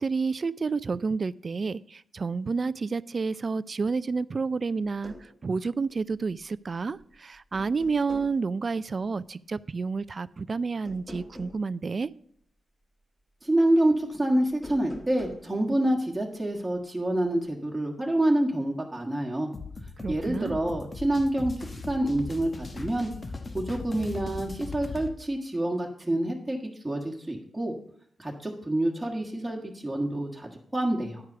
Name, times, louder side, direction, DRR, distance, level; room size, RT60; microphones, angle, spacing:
voice 1, 0.0-5.1 5.4-12.1 20.0-20.6, right 4 dB, 45° right, 19 dB, 0.3 m, -30 dB
sound 1, 4.8-5.3 6.8-7.2 7.5-8.4 10.8-11.6 14.5-15.5, left 1 dB, 15° left, 2.9 m, -43 dB
voice 2, 13.4-19.5 20.1-23.1 23.5-27.7 28.2-31.2, right 1 dB, 15° right, -1 dB, 1.6 m, -27 dB
sound 2, 19.5-25.1, left 4 dB, 40° left, 1.0 m, -39 dB
9.8 x 4.6 x 6.8 m, 0.65 s
supercardioid pair, 50°, 0 cm